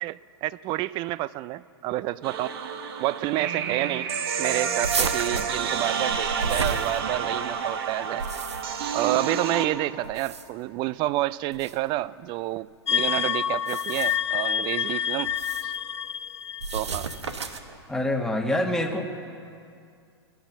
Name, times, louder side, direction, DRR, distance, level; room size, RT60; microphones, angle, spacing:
voice 1, 0.0-2.5 3.0-4.1 4.4-8.2 8.9-15.3 15.6-15.7 16.7-17.1, right 16 dB, 35° right, 20 dB, 0.4 m, -29 dB
sound 1, 2.2-9.7, right 6 dB, 60° right, 1.3 m, -29 dB
sound 2, 4.8-7.5 8.0-8.9 10.0-10.7 11.5-11.8 13.5-14.3 15.3-15.8 16.6-17.8, right 5 dB, 85° right, 1.0 m, -32 dB
sound 3, 12.9-17.3, left 9 dB, 85° left, 0.4 m, -28 dB
voice 2, 17.9-19.1, left 1 dB, 5° left, 3 dB, 1.4 m, -25 dB
17.0 x 10.5 x 7.3 m, 2.4 s
hypercardioid pair, 110°, 14 cm